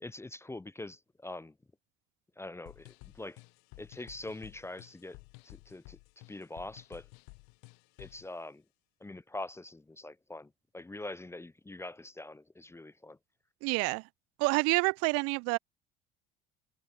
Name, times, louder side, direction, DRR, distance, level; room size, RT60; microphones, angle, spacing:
voice 1, 0.0-1.5 2.4-3.4 3.8-5.2 5.4-6.0 6.3-7.1 8.0-8.6 9.0-13.2, left 2 dB, 10° left, 0.8 m, -44 dB
sound 1, 2.7-8.3, left 36 dB, 60° left, 1.7 m, -54 dB
voice 2, 13.6-14.0 14.4-15.6, right 28 dB, 55° right, 0.9 m, -28 dB
figure-of-eight pair, 65°, 29 cm